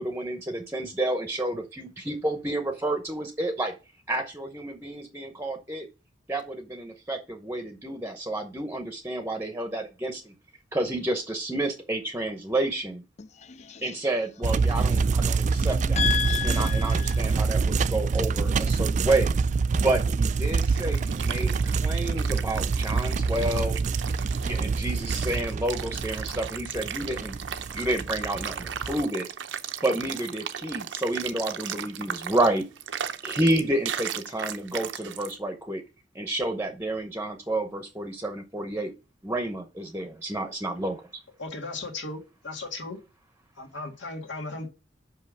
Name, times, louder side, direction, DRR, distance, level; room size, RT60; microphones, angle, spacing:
voice 1, 0.0-3.7 4.1-5.9 6.3-10.3 10.7-13.0 13.8-16.0 16.4-19.3 19.8-23.8 24.4-27.4 27.7-29.3 29.8-32.6 33.2-35.8 36.1-38.9 39.2-41.1, right 1 dB, 15° right, 0.8 m, -30 dB
voice 2, 13.2-13.9 15.6-17.2, left 7 dB, 40° left, 0.5 m, -31 dB
sound 1, 14.4-29.0, right 4 dB, 40° right, 0.3 m, -26 dB
sound 2, 20.4-35.3, right 8 dB, 80° right, 0.7 m, -36 dB
voice 3, 41.4-43.0 43.6-44.7, left 3 dB, 75° left, 1.8 m, -36 dB
5.5 x 5.5 x 6.3 m
head